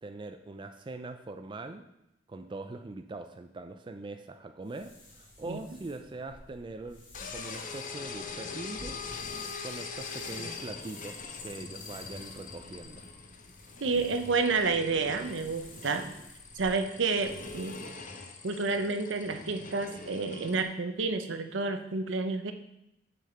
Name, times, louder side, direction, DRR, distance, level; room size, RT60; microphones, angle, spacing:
voice 1, 0.0-1.9 2.3-7.0 7.3-9.0 9.6-13.0, right 2 dB, 25° right, 6 dB, 0.4 m, -42 dB
sound 1, 4.6-17.9, left 1 dB, 80° left, 3.0 m, -53 dB
sound 2, 7.1-20.6, left 4 dB, 45° left, 0.8 m, -42 dB
voice 2, 13.8-16.0 16.5-17.8 18.4-22.5, right 4 dB, 70° right, 7 dB, 0.8 m, -30 dB
6.9 x 6.4 x 4.4 m, 0.84 s
head